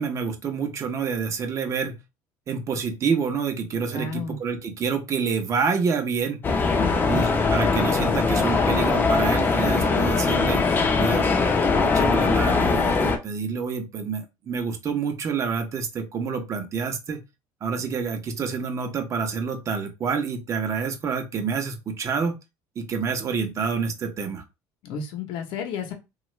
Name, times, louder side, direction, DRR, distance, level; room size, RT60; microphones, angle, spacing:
voice 1, 0.0-2.0 2.5-6.5 7.1-10.6 11.0-11.3 11.8-17.2 17.6-22.4 22.8-24.4, right 5 dB, 35° right, 0.7 m, -28 dB
voice 2, 3.9-4.4 6.8-7.3 24.8-25.9, left 5 dB, 65° left, 0.8 m, -31 dB
sound 1, 6.4-13.2, left 4 dB, 20° left, 0.6 m, -21 dB
3.0 x 2.3 x 3.1 m
cardioid pair, 130°, 9 cm